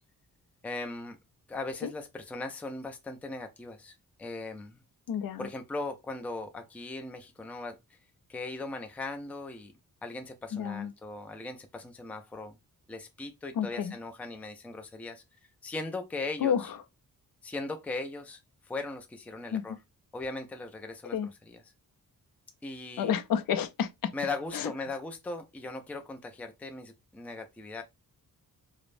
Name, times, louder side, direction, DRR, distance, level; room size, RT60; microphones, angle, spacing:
voice 1, 0.6-1.2 1.5-4.8 5.4-8.0 8.3-9.7 10.0-12.6 12.9-15.2 15.6-16.7 17.4-18.4 18.7-19.8 20.1-21.6 22.6-23.1 24.1-27.8, left 3 dB, 5° left, 0.3 m, -39 dB
voice 2, 5.1-5.5 10.5-10.9 13.6-13.9 16.4-16.6 19.5-19.6 21.1-21.3 23.0-24.1 24.5-24.7, left 8 dB, 70° left, 0.5 m, -29 dB
4.9 x 2.0 x 2.5 m
wide cardioid pair, 170°, 36 cm